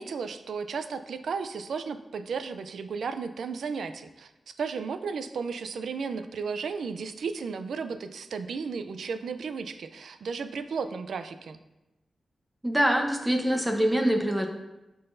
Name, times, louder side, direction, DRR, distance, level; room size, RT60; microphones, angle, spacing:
voice 1, 0.0-11.6, right 5 dB, 90° right, 10 dB, 0.4 m, -34 dB
voice 2, 12.6-14.5, equal, 10° right, 3 dB, 0.8 m, -24 dB
11.0 x 3.8 x 2.6 m, 0.98 s
wide cardioid pair, 90°, 0 cm